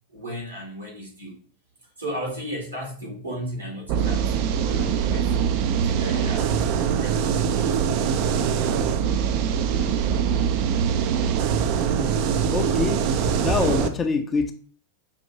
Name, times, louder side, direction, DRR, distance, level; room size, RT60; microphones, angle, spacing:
voice 1, 0.1-1.4 2.0-4.3 4.6-6.5 7.0-7.8, equal, 80° right, -2 dB, 1.8 m, -35 dB
sound 1, 3.9-13.9, right 7 dB, 45° right, 0.3 m, -23 dB
voice 2, 12.5-14.5, left 4 dB, 20° left, 7 dB, 0.5 m, -25 dB
5.4 x 2.5 x 2.9 m, 0.42 s
figure-of-eight pair, 90°, 0 cm